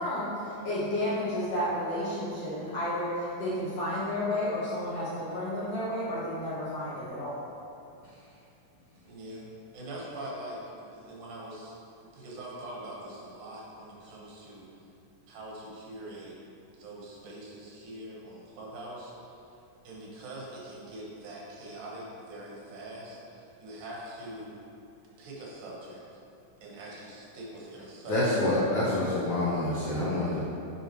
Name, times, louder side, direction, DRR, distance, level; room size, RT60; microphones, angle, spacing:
voice 1, 0.0-7.4, left 1 dB, 55° left, -10 dB, 1.9 m, -31 dB
voice 2, 9.0-11.7 12.0-14.7 15.3-16.4 16.8-19.1 19.8-24.6 25.2-26.0 26.6-28.2, right 1 dB, 75° right, -4 dB, 3.0 m, -43 dB
voice 3, 28.1-30.4, left 1 dB, 75° left, -8 dB, 1.4 m, -27 dB
8.5 x 5.3 x 3.1 m, 2.7 s
omnidirectional pair, 4.1 m